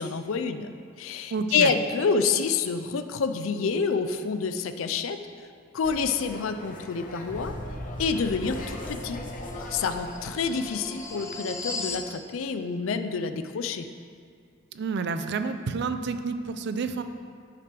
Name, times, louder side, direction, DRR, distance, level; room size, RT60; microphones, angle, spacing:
voice 1, 0.0-5.2 5.7-7.5 8.0-9.2 9.7-13.9, left 5 dB, 90° left, 9 dB, 0.4 m, -28 dB
voice 2, 1.3-1.7 14.7-17.0, right 4 dB, 60° right, 9 dB, 0.4 m, -29 dB
sound 1, 5.8-12.0, left 2 dB, 45° left, 0.8 m, -42 dB
sound 2, 7.3-12.1, left 2 dB, 15° left, 0.6 m, -37 dB
9.6 x 5.9 x 3.3 m, 2.2 s
head